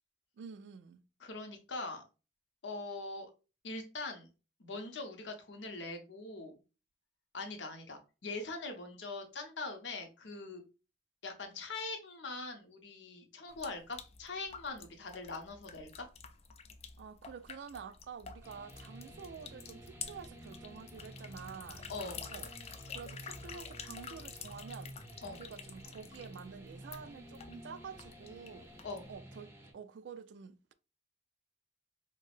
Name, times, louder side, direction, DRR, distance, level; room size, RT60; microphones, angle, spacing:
voice 1, 0.4-1.0 17.0-21.9 22.3-22.5 22.9-24.9 25.3-28.7 29.1-30.7, right 6 dB, 70° right, 0.3 m, -49 dB
voice 2, 1.2-2.0 2.6-3.3 3.6-4.3 4.6-6.5 7.3-10.6 11.2-16.1 21.9-22.2 25.2-25.4 28.8-29.1, left 3 dB, 70° left, 0.7 m, -42 dB
sound 1, 13.5-29.1, left 6 dB, 35° left, 0.3 m, -49 dB
sound 2, 18.4-29.7, right 1 dB, 15° right, 0.6 m, -52 dB
4.5 x 2.0 x 2.4 m
head